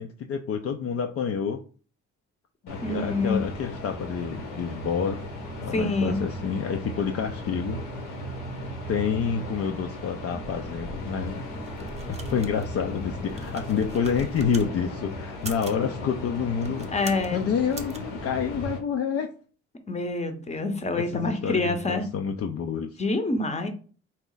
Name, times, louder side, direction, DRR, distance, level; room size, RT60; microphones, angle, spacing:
voice 1, 0.0-1.6 2.6-5.2 5.6-7.8 8.9-11.4 12.1-17.0 17.3-19.3 21.0-23.0, left 7 dB, 50° left, 4 dB, 0.4 m, -28 dB
sound 1, 2.7-18.8, equal, 90° left, 1.2 m, -36 dB
voice 2, 2.8-3.4 5.7-6.2 16.9-17.4 19.9-22.0 23.0-23.7, left 2 dB, 20° left, 7 dB, 0.8 m, -26 dB
sound 2, 11.5-14.7 15.3-15.8 16.5-17.3 17.7-18.0, right 3 dB, 20° right, 0.6 m, -41 dB
4.0 x 2.4 x 3.8 m, 0.40 s
cardioid pair, 90°, 30 cm